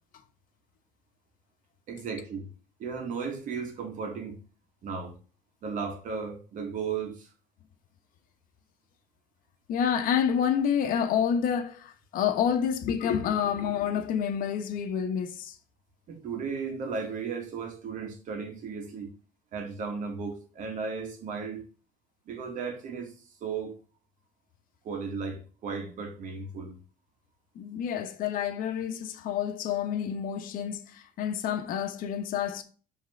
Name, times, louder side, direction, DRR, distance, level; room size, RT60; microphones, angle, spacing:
voice 1, 1.9-2.5 2.8-4.4 4.8-5.2 5.6-7.3 16.1-19.1 19.5-21.6 22.3-23.1 23.4-23.8 24.8-26.8, right 5 dB, 55° right, 1.8 m, -35 dB
voice 2, 9.7-15.6 27.5-32.6, left 8 dB, 65° left, 1.0 m, -28 dB
5.5 x 3.6 x 4.7 m
cardioid pair, 120°, 15 cm